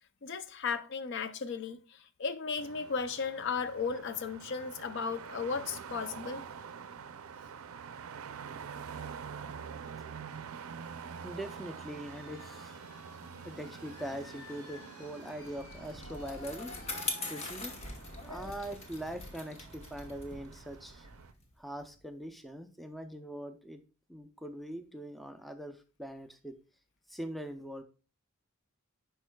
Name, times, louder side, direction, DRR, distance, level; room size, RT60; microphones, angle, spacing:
voice 1, 0.2-6.4, left 5 dB, 55° left, 0.5 m, -35 dB
sound 1, 2.6-21.3, right 6 dB, 75° right, 0.4 m, -47 dB
sound 2, 11.2-20.7, left 3 dB, 90° left, 0.9 m, -54 dB
voice 2, 11.2-12.8 13.4-16.7 17.3-17.7 18.3-21.1 21.6-23.8 24.1-26.6 27.1-27.8, equal, ahead, 0.4 m, -42 dB
Bicycle, 15.3-22.0, left 2 dB, 30° left, 1.0 m, -42 dB
10.5 x 4.5 x 2.2 m
head